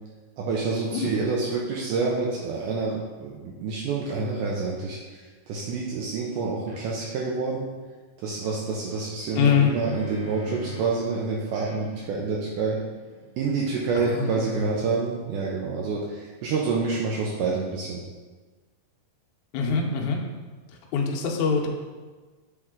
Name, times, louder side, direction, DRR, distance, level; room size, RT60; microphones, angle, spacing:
voice 1, 0.4-7.7 8.2-12.8 13.4-18.0, right 4 dB, 80° right, -3 dB, 2.0 m, -28 dB
sound 1, 6.7-6.8 9.2-11.0 11.5-14.9, equal, 60° right, 2.1 m, -41 dB
voice 2, 9.4-9.7 14.0-14.5 19.5-20.2 20.9-21.7, left 6 dB, 80° left, -1 dB, 1.8 m, -23 dB
8.0 x 3.3 x 3.6 m, 1.4 s
omnidirectional pair, 4.1 m